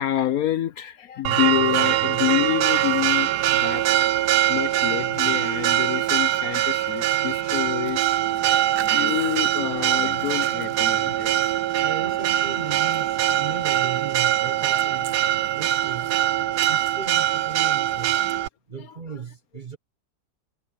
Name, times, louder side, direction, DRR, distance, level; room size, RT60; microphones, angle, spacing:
voice 1, 0.0-11.3 14.7-14.8 16.6-16.8 18.8-19.0, left 12 dB, 65° left, 1.1 m, -28 dB
Church bell, 1.2-18.5, right 13 dB, 75° right, 1.2 m, -22 dB
voice 2, 11.8-16.2 16.7-18.2 18.7-19.8, right 5 dB, 35° right, 0.9 m, -37 dB
omnidirectional pair, 1.8 m